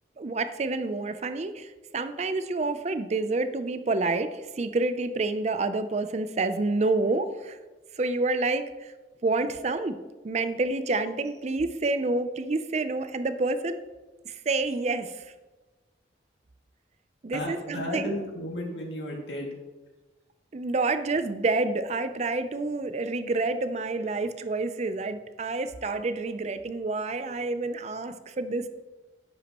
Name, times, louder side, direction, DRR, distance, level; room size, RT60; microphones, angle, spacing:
voice 1, 0.2-7.6 8.0-8.9 9.2-9.9 10.2-13.8 14.2-15.3 17.2-18.1 20.5-28.7, right 3 dB, 40° right, 10 dB, 0.5 m, -28 dB
voice 2, 17.3-19.6, left 1 dB, 80° left, -1 dB, 2.2 m, -33 dB
10.5 x 8.1 x 3.0 m, 1.2 s
head